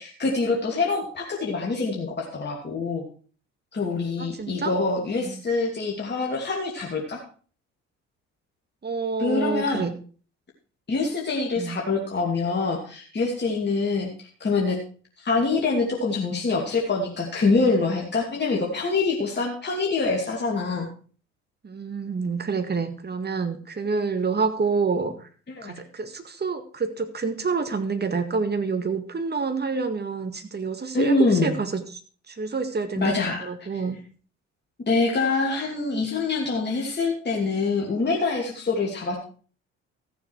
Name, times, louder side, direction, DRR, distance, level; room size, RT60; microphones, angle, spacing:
voice 1, 0.0-3.0 3.7-7.2 9.2-9.9 10.9-14.8 15.2-20.9 25.5-25.8 30.9-31.6 33.0-33.5 33.7-33.8 34.8-39.2, left 3 dB, 30° left, -1 dB, 2.7 m, -25 dB
voice 2, 4.2-4.8 5.2-5.4 8.8-9.9 11.6-11.8 21.6-25.3 25.6-32.0 32.3-34.0, right 4 dB, 25° right, 9 dB, 1.8 m, -28 dB
14.5 x 7.1 x 4.7 m, 0.41 s
hypercardioid pair, 55°, 37 cm